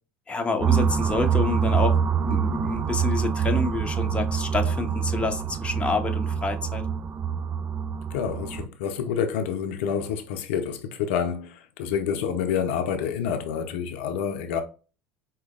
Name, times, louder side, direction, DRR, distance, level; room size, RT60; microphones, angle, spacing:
voice 1, 0.3-6.8, left 3 dB, 15° left, 0.8 m, -28 dB
sound 1, 0.6-8.7, right 7 dB, 30° right, 0.3 m, -25 dB
voice 2, 8.1-14.6, left 7 dB, 70° left, 0.6 m, -28 dB
4.9 x 2.8 x 2.3 m
hypercardioid pair, 75°, 7 cm